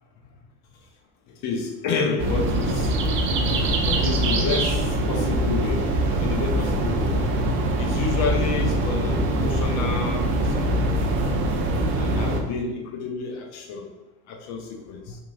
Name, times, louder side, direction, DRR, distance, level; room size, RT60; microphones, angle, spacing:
voice 1, 1.4-2.9 3.9-5.8 6.2-7.1 7.8-11.1 12.0-13.9 14.3-15.2, left 4 dB, 35° left, 3 dB, 0.6 m, -29 dB
sound 1, 2.2-12.4, right 1 dB, 30° right, 0.4 m, -23 dB
3.0 x 2.4 x 2.4 m, 1.2 s
hypercardioid pair, 85°, 48 cm